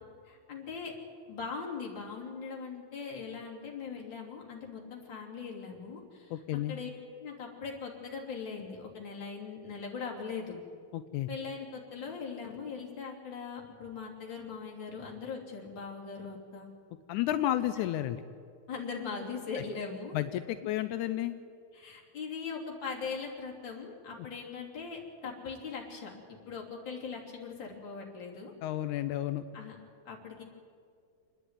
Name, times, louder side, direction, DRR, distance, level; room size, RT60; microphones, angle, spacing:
voice 1, 0.2-0.9 1.3-6.9 7.2-10.6 11.3-16.7 18.7-20.2 21.7-28.5 29.5-29.7 30.0-30.4, left 5 dB, 35° left, -2 dB, 3.4 m, -40 dB
voice 2, 6.3-6.7 10.9-11.3 17.1-18.2 20.1-21.3 28.6-29.4, left 13 dB, 80° left, 10 dB, 1.8 m, -31 dB
27.5 x 10.0 x 9.6 m, 2.3 s
omnidirectional pair, 4.1 m